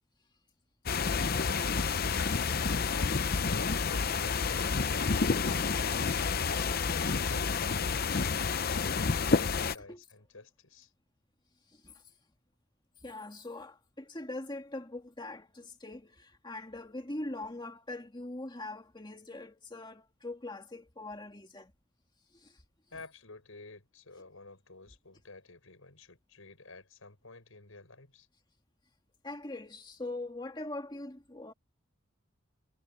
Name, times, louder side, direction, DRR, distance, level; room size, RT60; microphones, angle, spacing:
sound 1, 0.9-9.8, left 5 dB, 45° left, 0.7 m, -29 dB
voice 1, 2.9-6.6 7.1-10.9 22.9-28.3, left 3 dB, 85° left, 5.3 m, -51 dB
voice 2, 11.7-12.0 13.0-21.7 22.3-22.6 29.2-31.5, left 2 dB, 20° left, 2.1 m, -42 dB
head